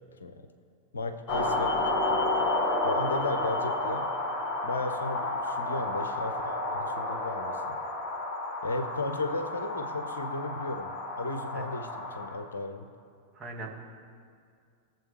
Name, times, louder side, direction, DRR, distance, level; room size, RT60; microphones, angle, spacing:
voice 1, 0.2-0.5 0.9-2.5 2.8-4.1 4.6-7.8 8.6-12.9, left 2 dB, 70° left, 9 dB, 0.7 m, -35 dB
sound 1, 1.3-12.4, left 2 dB, 30° left, 2.2 m, -31 dB
voice 2, 13.3-13.7, right 2 dB, 15° right, -3 dB, 2.1 m, -40 dB
21.0 x 7.4 x 3.5 m, 2.2 s
figure-of-eight pair, 90°, 0 cm